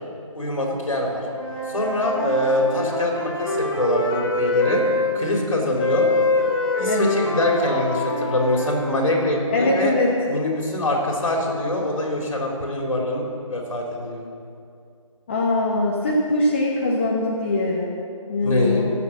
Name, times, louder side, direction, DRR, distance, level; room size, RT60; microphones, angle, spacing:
voice 1, 0.3-1.2 1.7-4.8 5.1-6.1 6.8-9.9 10.3-13.2 13.5-14.2 18.4-18.8, left 1 dB, 70° left, -1 dB, 3.9 m, -24 dB
Wind instrument woodwind instrument, 1.2-5.1 5.8-9.3, left 2 dB, 45° left, 4.0 m, -25 dB
voice 2, 6.9-7.2 9.5-10.1 15.3-17.9 18.3-18.9, left 2 dB, 20° left, -3 dB, 1.0 m, -22 dB
16.5 x 6.7 x 7.6 m, 2.5 s
figure-of-eight pair, 170°, 17 cm